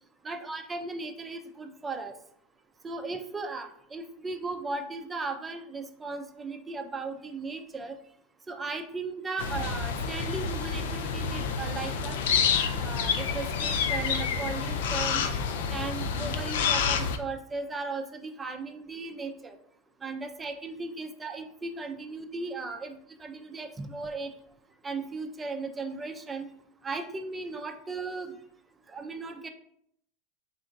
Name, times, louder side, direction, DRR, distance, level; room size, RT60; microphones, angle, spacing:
voice 1, 0.2-2.1 2.8-8.0 8.5-12.2 12.8-15.2 15.7-19.6 20.0-24.3 24.8-26.5 26.8-28.3 28.9-29.5, right 3 dB, 20° right, 6 dB, 0.5 m, -36 dB
sound 1, 9.4-17.2, left 6 dB, 75° left, 0.4 m, -28 dB
3.6 x 2.4 x 3.9 m, 0.69 s
hypercardioid pair, 95°, 0 cm